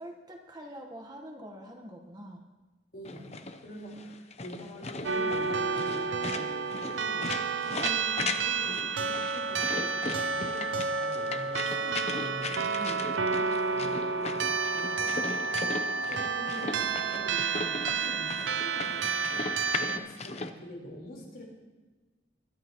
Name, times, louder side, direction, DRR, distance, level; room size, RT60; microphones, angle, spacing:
voice 1, 0.0-2.4 12.8-13.0, equal, 20° right, 2 dB, 1.3 m, -44 dB
voice 2, 2.9-3.3 3.6-7.3 7.6-21.4, equal, 55° left, -2 dB, 4.4 m, -45 dB
sound 1, 3.1-20.5, left 3 dB, 35° left, 0.8 m, -38 dB
sound 2, 5.0-20.0, right 5 dB, 85° right, 0.7 m, -30 dB
23.5 x 11.5 x 3.1 m, 1.3 s
head